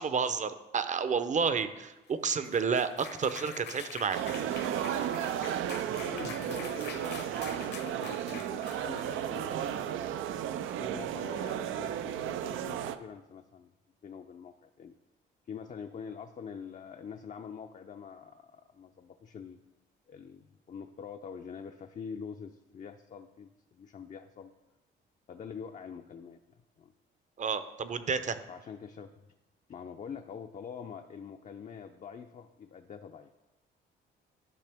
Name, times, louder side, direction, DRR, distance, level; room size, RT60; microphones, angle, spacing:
voice 1, 0.0-4.3 27.4-28.4, right 5 dB, 40° right, 11 dB, 0.7 m, -30 dB
sound 1, 2.1-10.4, left 6 dB, 60° left, 0.9 m, -46 dB
sound 2, 4.1-13.0, right 10 dB, 85° right, 0.5 m, -34 dB
voice 2, 6.0-9.9 10.4-13.7 14.0-14.9 15.5-19.6 20.1-24.5 25.3-26.4 26.8-26.9 28.5-29.1 29.7-33.3, left 6 dB, 40° left, 5 dB, 0.5 m, -45 dB
12.0 x 5.8 x 3.5 m, 1.0 s
cardioid pair, 90°, 20 cm